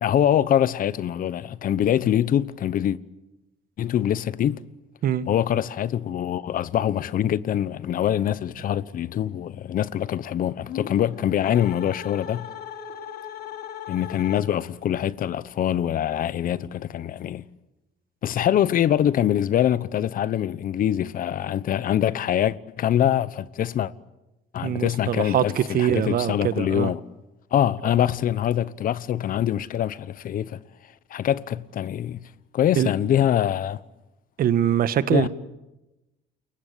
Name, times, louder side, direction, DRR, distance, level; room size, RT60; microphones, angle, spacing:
voice 1, 0.0-3.0 3.8-4.6 5.3-12.5 13.9-17.4 18.2-23.9 24.5-27.0 27.5-30.6 31.1-32.2 32.5-33.8 35.1-35.3, left 10 dB, 55° left, 1.0 m, -24 dB
sound 1, 10.6-14.8, left 9 dB, 75° left, 3.2 m, -38 dB
voice 2, 24.6-26.9 32.7-32.9 34.4-35.3, right 10 dB, 60° right, 1.5 m, -23 dB
28.5 x 22.5 x 8.4 m
cardioid pair, 110°, 17 cm